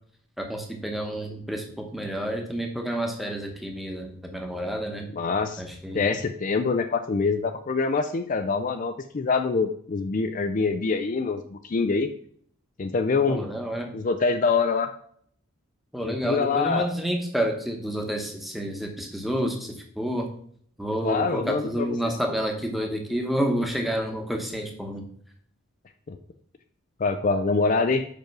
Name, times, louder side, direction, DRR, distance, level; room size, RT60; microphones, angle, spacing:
voice 1, 0.4-5.1 5.6-6.1 13.3-14.0 15.9-20.3 20.8-25.1, equal, ahead, 2 dB, 0.9 m, -29 dB
voice 2, 5.1-5.6 5.9-12.1 12.8-13.4 13.9-14.9 16.2-16.9 21.0-22.1 26.1-26.2 27.0-28.1, left 4 dB, 35° left, 8 dB, 0.4 m, -25 dB
5.4 x 5.1 x 5.9 m, 0.62 s
head